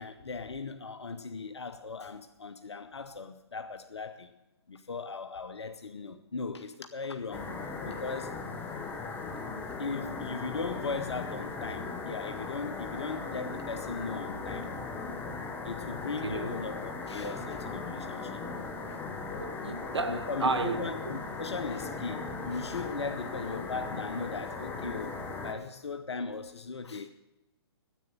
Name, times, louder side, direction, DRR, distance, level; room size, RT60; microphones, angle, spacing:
voice 1, 0.0-4.3 4.7-7.5 7.8-8.4 9.8-14.7 15.6-18.4 18.9-19.0 20.1-27.1, left 4 dB, 80° left, 0.8 m, -38 dB
sound 1, 7.3-25.5, left 4 dB, 15° left, 1.3 m, -38 dB
voice 2, 16.2-16.6 19.4-20.8, right 3 dB, 80° right, 1.2 m, -32 dB
10.0 x 8.2 x 9.3 m
figure-of-eight pair, 130°, 14 cm